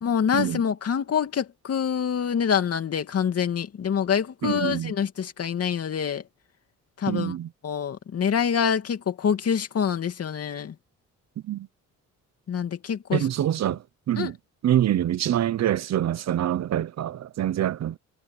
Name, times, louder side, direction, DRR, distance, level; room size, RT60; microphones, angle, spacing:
voice 1, 0.0-6.2 7.0-7.3 7.6-10.7 12.5-13.2 14.2-14.3, left 7 dB, 55° left, 2.5 m, -26 dB
voice 2, 4.4-4.9 7.1-7.5 11.4-11.7 13.1-14.4 14.6-18.0, right 11 dB, 60° right, 1.0 m, -25 dB
cardioid pair, 90°, 30 cm